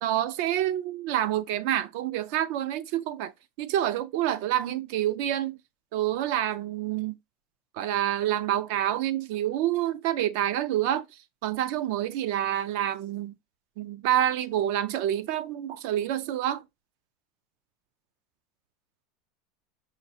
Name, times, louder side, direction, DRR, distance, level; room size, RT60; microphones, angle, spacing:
voice 1, 0.0-3.3 3.6-5.6 5.9-7.2 7.7-11.1 11.4-13.3 13.8-16.6, right 12 dB, 60° right, 0.3 m, -27 dB
5.0 x 2.3 x 2.6 m
supercardioid pair, 160°, 0 cm